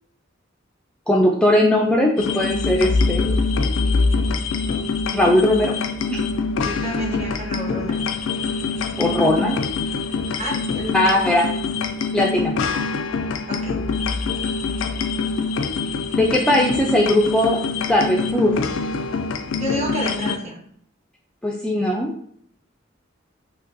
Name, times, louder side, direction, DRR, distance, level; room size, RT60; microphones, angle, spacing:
voice 1, 1.1-3.4 5.1-5.7 6.1-6.2 9.0-9.6 10.9-11.5 12.1-12.6 16.2-17.6 17.9-18.5 21.4-22.1, left 1 dB, 5° left, -1 dB, 0.3 m, -19 dB
sound 1, 2.2-20.4, left 4 dB, 80° left, 0.3 m, -24 dB
voice 2, 6.6-8.0 10.4-11.3 13.5-13.8 19.5-20.6, equal, 35° right, -1 dB, 1.0 m, -29 dB
4.9 x 2.2 x 2.6 m, 0.66 s
head